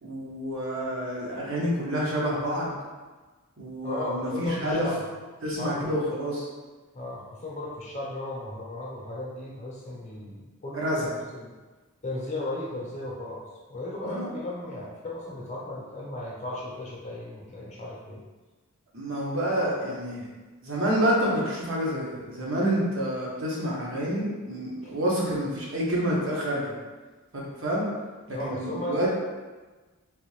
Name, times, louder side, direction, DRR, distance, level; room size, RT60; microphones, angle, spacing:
voice 1, 0.0-2.7 3.6-4.9 5.4-6.5 10.7-11.1 14.1-14.3 18.9-20.3 20.6-26.7 27.3-27.9 28.3-29.1, equal, 60° right, -4 dB, 0.9 m, -28 dB
voice 2, 3.8-5.0 5.4-5.9 6.9-11.1 11.4-11.5 12.0-13.4 13.7-18.2 24.8-24.9 28.3-29.1, left 1 dB, 30° left, -4 dB, 0.7 m, -35 dB
3.5 x 2.6 x 3.1 m, 1.3 s
head